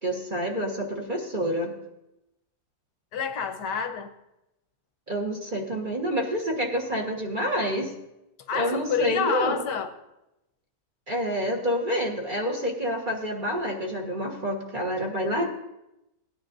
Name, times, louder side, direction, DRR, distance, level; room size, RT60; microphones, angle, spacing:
voice 1, 0.0-1.8 5.1-7.9 8.5-9.6 11.1-15.5, equal, 30° right, 0 dB, 1.3 m, -28 dB
voice 2, 3.1-4.1 8.5-9.9, left 7 dB, 90° left, 7 dB, 1.5 m, -28 dB
18.0 x 9.7 x 2.6 m, 0.89 s
omnidirectional pair, 1.8 m